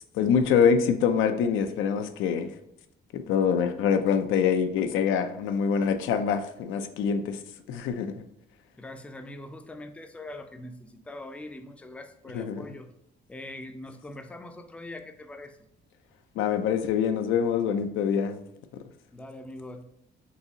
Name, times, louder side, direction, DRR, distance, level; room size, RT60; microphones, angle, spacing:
voice 1, 0.1-2.5 3.1-7.4 7.7-8.2 12.3-12.6 16.4-18.4, left 7 dB, 90° left, 8 dB, 0.4 m, -25 dB
voice 2, 8.8-12.9 13.3-15.6 19.1-19.8, left 1 dB, 5° left, 6 dB, 0.4 m, -42 dB
4.1 x 2.7 x 2.7 m, 0.82 s
cardioid pair, 90°, 20 cm